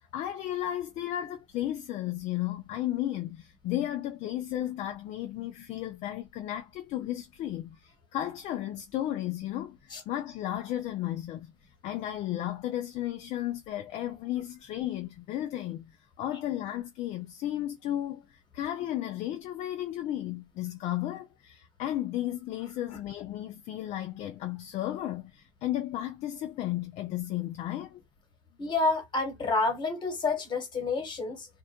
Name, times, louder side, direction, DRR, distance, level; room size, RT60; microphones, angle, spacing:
voice 1, 0.0-11.5 11.8-28.0, left 13 dB, 45° left, 0.4 m, -34 dB
voice 2, 28.6-31.5, left 3 dB, 25° left, 1.3 m, -29 dB
2.6 x 2.1 x 2.7 m
supercardioid pair, 110°, 17 cm